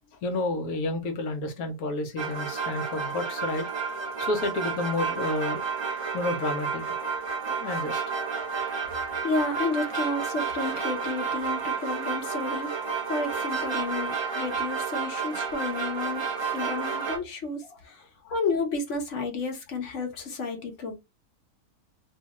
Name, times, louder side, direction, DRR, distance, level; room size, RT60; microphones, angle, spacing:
voice 1, 0.2-3.7 4.2-5.6 6.1-6.8 7.5-8.0 18.2-18.3, left 2 dB, 80° left, 1.3 m, -30 dB
sound 1, 2.2-17.2, right 5 dB, 30° right, 0.5 m, -31 dB
voice 2, 9.2-12.7 13.1-18.0 18.3-21.0, left 3 dB, 60° left, 1.1 m, -31 dB
2.7 x 2.3 x 2.9 m
omnidirectional pair, 1.5 m